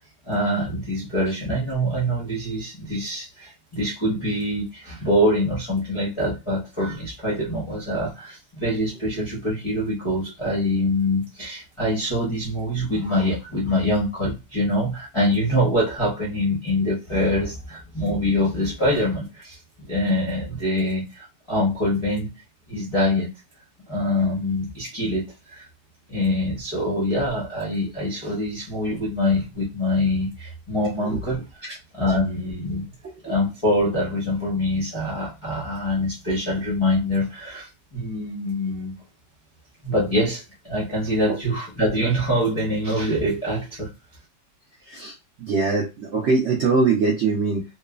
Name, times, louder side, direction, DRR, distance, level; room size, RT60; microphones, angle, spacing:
voice 1, 0.2-19.6 19.9-22.3 22.7-23.3 23.9-25.7 26.1-32.8 33.2-39.0 39.8-43.9, left 1 dB, 45° left, 0.4 m, -24 dB
voice 2, 45.4-47.6, right 4 dB, 70° right, 0.6 m, -21 dB
3.1 x 2.0 x 2.3 m
omnidirectional pair, 1.9 m